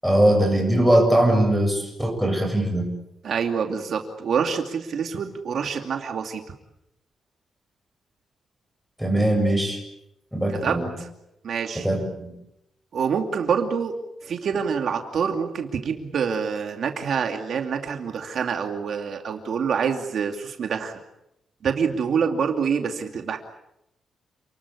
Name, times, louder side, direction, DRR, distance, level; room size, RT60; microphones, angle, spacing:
voice 1, 0.0-2.9 9.0-9.8 10.3-10.9 11.7-12.3, right 1 dB, ahead, 2 dB, 7.5 m, -21 dB
voice 2, 3.2-6.4 10.5-11.1 11.4-11.9 12.9-14.0 14.2-21.0 21.6-23.4, right 6 dB, 60° right, 4 dB, 2.6 m, -26 dB
29.5 x 21.0 x 8.4 m, 0.84 s
cardioid pair, 130°, 0 cm